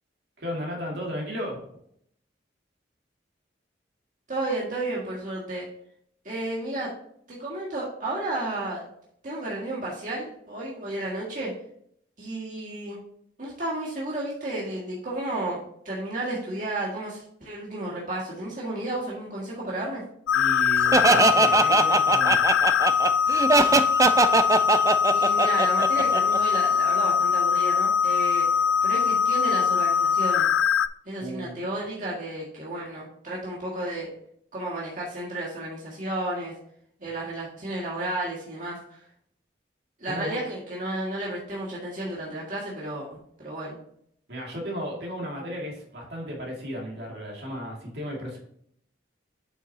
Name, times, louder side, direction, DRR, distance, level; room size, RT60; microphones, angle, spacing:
voice 1, 0.4-1.6 20.3-22.4 31.2-31.6 40.0-40.4 44.3-48.4, equal, 60° right, -2 dB, 2.3 m, -34 dB
voice 2, 4.3-5.7 6.2-6.9 7.3-8.9 9.2-11.5 12.2-13.0 13.4-15.6 15.8-20.0 25.1-28.5 28.8-30.5 31.1-34.1 34.5-36.5 37.0-38.8 40.0-43.1 43.4-43.8, right 1 dB, 45° right, -6 dB, 1.9 m, -32 dB
sound 1, 20.3-30.9, left 7 dB, 90° left, 0.3 m, -22 dB
Laughter, 20.9-26.6, right 3 dB, 15° right, 0.3 m, -21 dB
7.8 x 6.2 x 2.8 m, 0.67 s
head